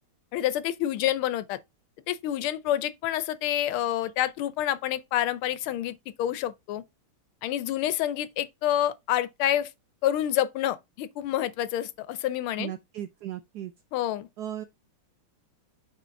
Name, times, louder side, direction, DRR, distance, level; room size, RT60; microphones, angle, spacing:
voice 1, 0.3-1.6 2.1-6.8 7.4-9.7 10.0-12.7 13.9-14.3, left 12 dB, 90° left, 1.6 m, -28 dB
voice 2, 12.6-13.7 14.4-14.6, right 11 dB, 75° right, 0.9 m, -36 dB
5.7 x 4.3 x 5.1 m
omnidirectional pair, 2.3 m